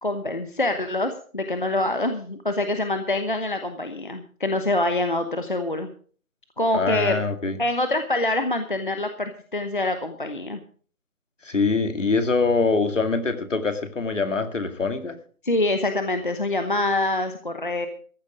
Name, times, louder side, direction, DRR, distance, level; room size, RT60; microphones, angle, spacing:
voice 1, 0.0-5.9 6.6-7.2 7.6-10.6 15.4-17.9, left 2 dB, 35° left, 1.0 m, -25 dB
voice 2, 6.7-7.6 11.4-15.2, left 4 dB, 55° left, 2.2 m, -24 dB
14.5 x 12.0 x 5.0 m
figure-of-eight pair, 180°, 44 cm